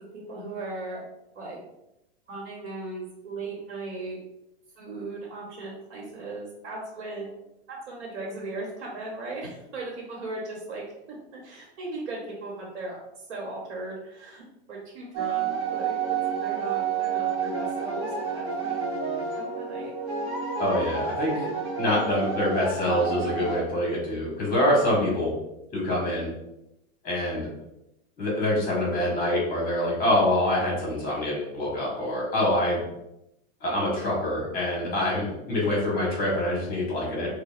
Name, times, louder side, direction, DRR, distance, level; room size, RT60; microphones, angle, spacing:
voice 1, 0.1-1.0 1.3-1.6 2.3-4.2 4.8-7.4 7.7-10.8 11.4-13.0 13.3-14.4 14.7-15.9 16.4-18.8 19.4-19.9, right 2 dB, 80° right, -3 dB, 1.2 m, -37 dB
sound 1, 15.1-23.6, right 6 dB, 30° right, 1.2 m, -29 dB
voice 2, 20.6-21.5 21.8-25.3 25.7-26.3 27.0-27.5 28.2-32.8 33.6-37.3, left 1 dB, 25° left, -3 dB, 1.3 m, -25 dB
4.9 x 2.2 x 2.5 m, 0.87 s
hypercardioid pair, 130°, 34 cm